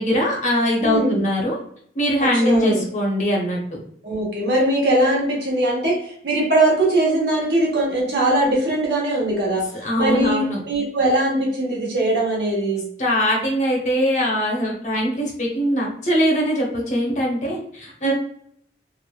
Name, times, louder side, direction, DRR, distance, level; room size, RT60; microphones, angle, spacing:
voice 1, 0.0-1.6 1.9-3.6 9.8-10.6 13.0-18.1, equal, 40° left, -1 dB, 0.6 m, -21 dB
voice 2, 0.8-1.2 2.2-2.8 4.0-9.6 10.0-12.8 18.0-18.1, right 1 dB, 65° right, -3 dB, 1.0 m, -21 dB
3.0 x 2.1 x 2.2 m, 0.65 s
head